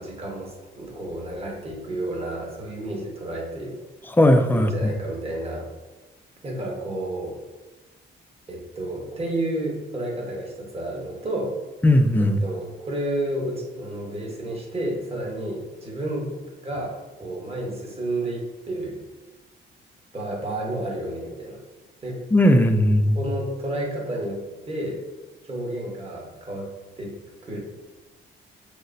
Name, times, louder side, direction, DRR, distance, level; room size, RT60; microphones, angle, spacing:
voice 1, 0.0-3.8 4.5-5.7 6.4-7.3 8.5-11.5 12.2-16.4 16.6-16.9 17.2-19.0 20.1-21.6 22.0-22.2 23.1-25.0 25.4-27.2 27.4-27.6, right 1 dB, 30° right, -2 dB, 1.2 m, -31 dB
voice 2, 4.2-4.9 11.8-12.4 22.3-23.2, left 1 dB, 10° left, 7 dB, 0.4 m, -17 dB
6.2 x 2.1 x 2.6 m, 1.2 s
cardioid pair, 90°, 20 cm